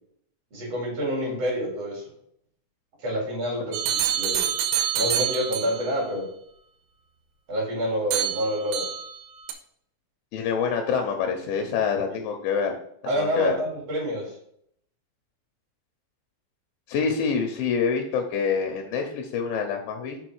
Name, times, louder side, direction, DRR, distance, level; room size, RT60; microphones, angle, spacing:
voice 1, 0.5-2.0 3.0-4.5 4.9-6.3 7.5-8.9 12.1-12.2 13.0-14.3, equal, 50° right, -2 dB, 1.9 m, -28 dB
sound 1, 3.7-5.9 8.1-9.2 9.5-9.6, right 9 dB, 80° right, 2.8 m, -26 dB
voice 2, 10.3-12.8 13.2-13.5 16.9-20.2, left 6 dB, 85° left, 4 dB, 2.7 m, -26 dB
7.0 x 4.4 x 4.6 m, 0.68 s
omnidirectional pair, 6.0 m